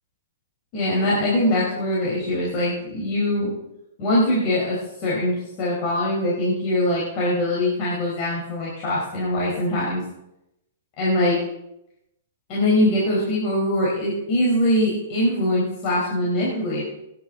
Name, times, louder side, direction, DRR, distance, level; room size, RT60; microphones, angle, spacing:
voice 1, 0.7-3.5 4.0-10.0 11.0-11.4 12.5-16.8, left 1 dB, 40° left, -6 dB, 4.2 m, -22 dB
17.0 x 10.5 x 3.9 m, 0.85 s
hypercardioid pair, 140°, 0 cm